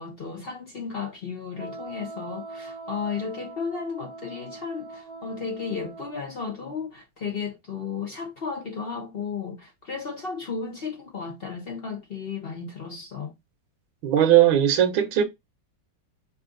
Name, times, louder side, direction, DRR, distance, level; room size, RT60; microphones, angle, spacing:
voice 1, 0.0-13.3, left 5 dB, 55° left, 0.6 m, -34 dB
Wind instrument woodwind instrument, 1.5-6.3, right 3 dB, 75° right, 1.8 m, -41 dB
voice 2, 14.0-15.2, right 11 dB, 90° right, 1.6 m, -18 dB
5.5 x 2.5 x 3.7 m
omnidirectional pair, 2.1 m